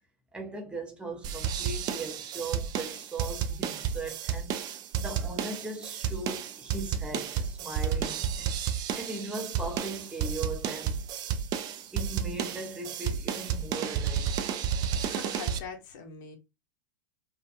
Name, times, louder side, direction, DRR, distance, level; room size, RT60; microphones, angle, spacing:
voice 1, 0.3-4.6 5.0-11.0 11.9-14.4, right 3 dB, 10° right, 0.7 m, -39 dB
sound 1, 1.2-15.6, right 8 dB, 40° right, 0.4 m, -31 dB
voice 2, 14.9-16.4, left 6 dB, 55° left, 0.8 m, -42 dB
2.3 x 2.2 x 2.8 m
hypercardioid pair, 105°, 11 cm